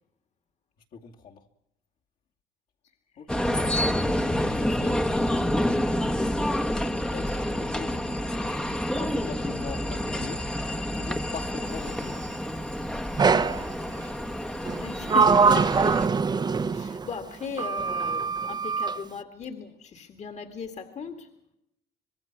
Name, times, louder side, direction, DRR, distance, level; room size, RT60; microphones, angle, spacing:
voice 1, 0.9-1.5 3.2-3.5 4.4-5.1 7.1-8.1 9.0-10.5 10.8-12.3, left 6 dB, 60° left, 2.5 m, -41 dB
sound 1, 3.3-16.1, left 1 dB, 5° left, 1.0 m, -28 dB
Sliding door, 13.2-13.7 14.7-17.1 17.6-19.0, right 5 dB, 25° right, 0.8 m, -23 dB
voice 2, 14.8-16.0 16.7-21.3, left 6 dB, 45° left, 2.1 m, -37 dB
25.0 x 21.0 x 6.1 m
cardioid pair, 110°, 17 cm